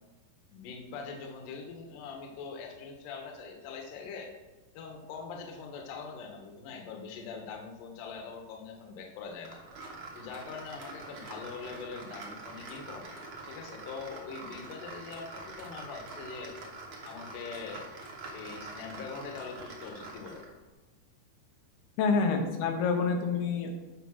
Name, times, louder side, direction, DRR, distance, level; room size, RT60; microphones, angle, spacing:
voice 1, 0.5-4.3 4.7-9.6 10.1-13.2 13.4-16.5 17.0-17.9 18.3-20.4, left 5 dB, 70° left, 2 dB, 2.5 m, -43 dB
sound 1, 9.4-20.6, right 3 dB, 85° right, 1.1 m, -45 dB
voice 2, 22.0-23.7, left 4 dB, 85° left, 3 dB, 3.1 m, -27 dB
8.6 x 5.2 x 6.2 m, 1.1 s
omnidirectional pair, 4.5 m